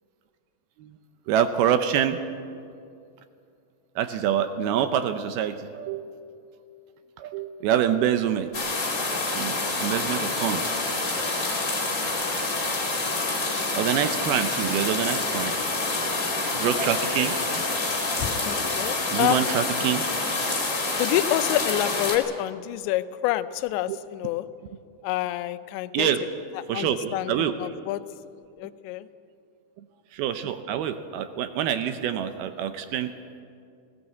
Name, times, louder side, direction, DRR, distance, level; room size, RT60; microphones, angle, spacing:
voice 1, 1.3-2.2 4.0-6.2 7.2-8.7 9.4-10.9 13.8-15.5 16.0-16.2 16.5-17.6 19.1-20.1 23.9-24.0 25.9-26.2 26.7-27.6 30.1-33.1, right 9 dB, 75° right, 9 dB, 2.3 m, -26 dB
sound 1, 8.5-22.2, left 3 dB, 25° left, 1.9 m, -27 dB
voice 2, 18.2-19.8 21.0-24.5 25.0-26.1 26.6-28.0 28.6-29.1, left 14 dB, 85° left, 13 dB, 3.0 m, -28 dB
18.0 x 18.0 x 8.2 m, 2.4 s
omnidirectional pair, 5.1 m